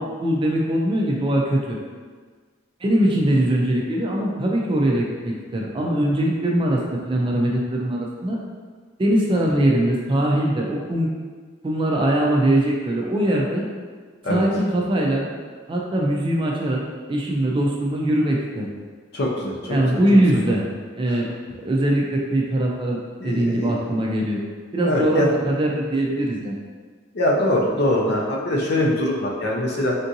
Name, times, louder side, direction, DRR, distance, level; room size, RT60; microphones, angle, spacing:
voice 1, 0.0-1.8 2.8-8.4 9.0-11.1 11.6-13.6 14.3-15.3 15.7-16.8 17.1-18.7 19.7-20.7 21.0-21.3 21.6-24.4 24.7-26.6, right 1 dB, 25° right, -2 dB, 0.3 m, -21 dB
voice 2, 19.1-19.5 23.2-23.7 24.8-25.3 27.1-30.0, left 1 dB, 55° left, -2 dB, 0.5 m, -22 dB
3.5 x 2.6 x 2.6 m, 1.6 s
head